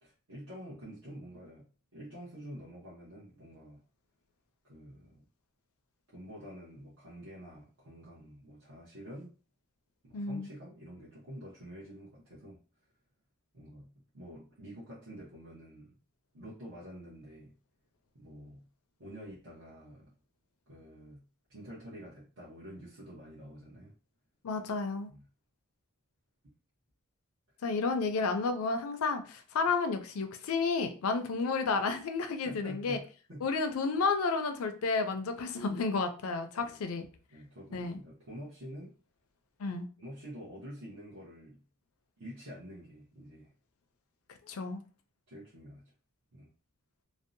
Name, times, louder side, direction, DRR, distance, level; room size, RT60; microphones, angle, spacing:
voice 1, 0.0-3.8 4.6-5.3 6.1-9.3 10.0-12.6 13.5-15.9 16.3-17.5 18.1-18.7 19.0-20.1 20.7-21.2 21.5-23.9 25.1-25.2 32.4-33.5 36.5-36.8 37.3-39.0 40.0-41.6 42.2-43.5 45.3-45.9 46.3-46.5, equal, 65° right, 0.8 m, -48 dB
voice 2, 10.1-10.5 24.4-25.1 27.6-33.0 33.4-37.1 37.7-38.0 39.6-39.9 44.5-44.8, left 4 dB, 75° left, 0.4 m, -31 dB
2.6 x 2.0 x 2.5 m
head